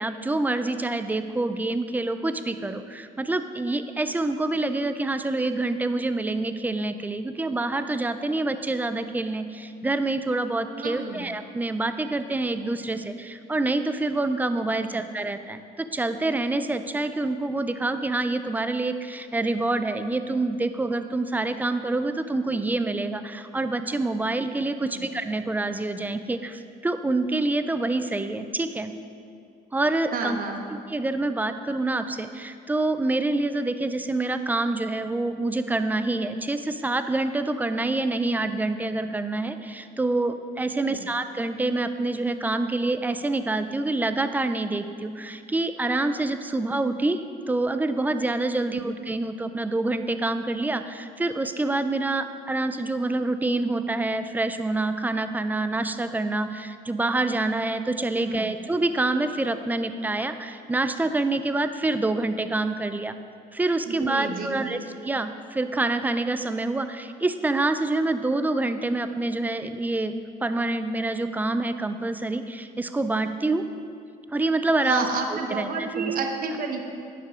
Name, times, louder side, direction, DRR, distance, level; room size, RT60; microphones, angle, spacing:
voice 1, 0.0-28.9 29.7-30.4 30.9-63.1 63.5-70.1 70.4-73.7 74.3-75.1 75.3-76.1 76.5-76.6, right 2 dB, 10° right, 9 dB, 0.3 m, -26 dB
voice 2, 10.8-11.2 15.0-15.1 24.8-25.1 30.1-30.6 40.7-41.0 58.2-58.5 64.0-64.8 74.9-76.9, right 4 dB, 60° right, 4 dB, 0.9 m, -30 dB
9.4 x 5.7 x 3.6 m, 2.4 s
cardioid pair, 100°, 17 cm